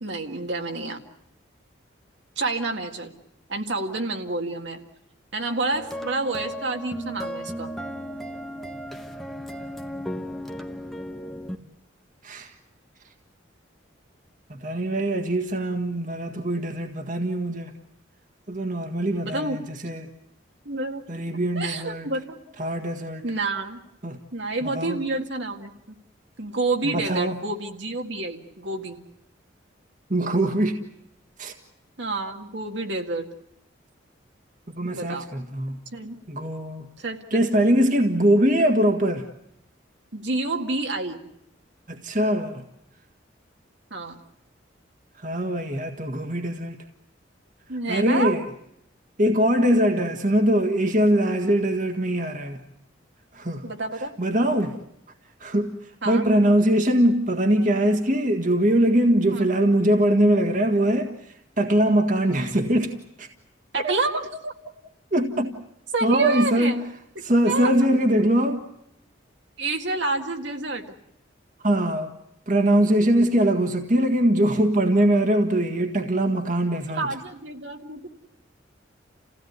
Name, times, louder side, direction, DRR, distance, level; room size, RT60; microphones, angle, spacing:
voice 1, 0.0-1.0 2.4-3.1 3.5-4.8 5.3-7.7 19.2-19.9 20.7-21.0 21.6-22.4 23.2-23.8 24.3-25.7 26.4-29.0 32.0-33.3 34.8-35.3 35.9-36.2 37.0-37.6 40.1-41.2 43.9-44.2 47.7-48.3 53.6-54.1 56.0-56.3 59.3-59.5 63.7-64.5 65.9-66.8 67.2-67.7 69.6-70.9 77.0-78.1, right 2 dB, 65° right, 2.0 m, -29 dB
sound 1, 5.7-11.6, equal, ahead, 1.1 m, -35 dB
voice 2, 14.5-17.7 18.5-20.1 21.1-22.1 22.6-23.2 24.0-24.2 24.6-25.0 26.8-27.4 30.1-30.8 31.4-31.5 34.7-35.8 36.3-36.9 37.3-39.3 41.9-42.6 45.2-46.8 47.9-48.5 49.2-52.6 53.3-53.6 54.2-54.8 55.4-55.7 56.1-63.3 63.8-63.9 65.1-65.6 66.0-66.8 67.2-68.6 71.6-72.1 72.5-77.1, right 1 dB, 40° right, 1.7 m, -22 dB
29.0 x 16.5 x 9.5 m
head